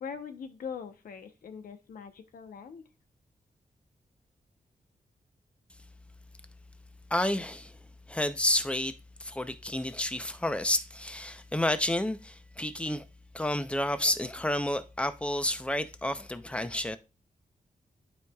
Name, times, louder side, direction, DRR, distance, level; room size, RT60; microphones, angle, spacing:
voice 1, 0.0-2.8, left 6 dB, 90° left, 0.9 m, -42 dB
voice 2, 7.1-7.7 8.1-8.9 9.2-13.0 13.3-17.0, left 1 dB, 10° left, 0.6 m, -30 dB
12.0 x 4.8 x 2.3 m
cardioid pair, 90°, 14 cm